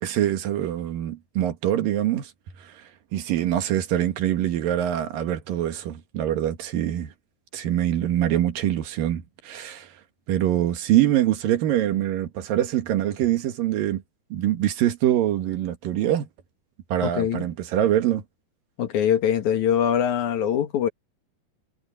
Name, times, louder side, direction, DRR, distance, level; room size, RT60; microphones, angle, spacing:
voice 1, 0.0-2.3 2.6-2.8 3.1-7.1 7.5-9.9 10.3-14.0 14.3-16.3 16.9-18.2, right 12 dB, 90° right, 3.3 m, -24 dB
voice 2, 17.0-17.5 18.8-20.9, left 9 dB, 65° left, 2.8 m, -23 dB
omnidirectional pair, 3.8 m